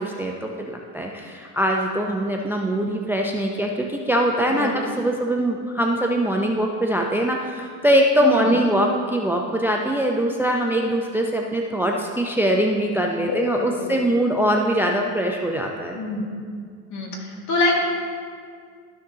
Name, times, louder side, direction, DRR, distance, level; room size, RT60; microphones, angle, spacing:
voice 1, 0.0-16.0, right 1 dB, 5° right, 1 dB, 0.5 m, -22 dB
voice 2, 13.2-13.9 15.9-16.2 16.9-17.1 17.5-17.7, left 3 dB, 50° left, -1 dB, 2.0 m, -25 dB
13.0 x 6.5 x 2.8 m, 2.1 s
supercardioid pair, 100°, 39 cm